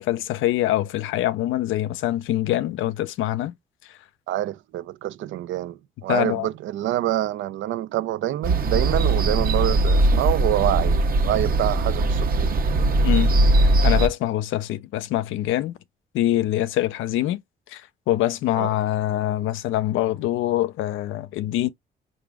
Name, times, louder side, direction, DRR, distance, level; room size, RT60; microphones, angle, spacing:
voice 1, 0.0-3.5 6.1-6.5 13.0-15.8 16.1-17.4 17.7-17.8 18.1-21.7, left 14 dB, 90° left, 0.5 m, -24 dB
voice 2, 4.3-12.5 18.6-18.7, right 13 dB, 75° right, 0.4 m, -26 dB
sound 1, 8.4-14.1, right 2 dB, 45° right, 0.8 m, -20 dB
4.9 x 2.6 x 3.4 m
cardioid pair, 90°, 20 cm